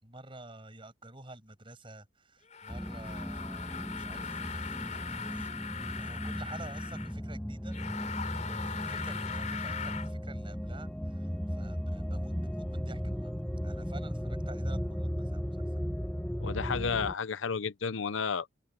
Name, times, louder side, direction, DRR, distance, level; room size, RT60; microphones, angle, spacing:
voice 1, 0.0-5.5 5.8-13.3 13.6-16.0, right 2 dB, 25° right, 6.7 m, -50 dB
sound 1, 2.5-7.2 7.7-10.1, left 6 dB, 40° left, 3.9 m, -40 dB
sound 2, 2.7-17.1, equal, 5° left, 1.4 m, -36 dB
voice 2, 16.4-18.6, left 5 dB, 85° left, 0.7 m, -32 dB
open air
head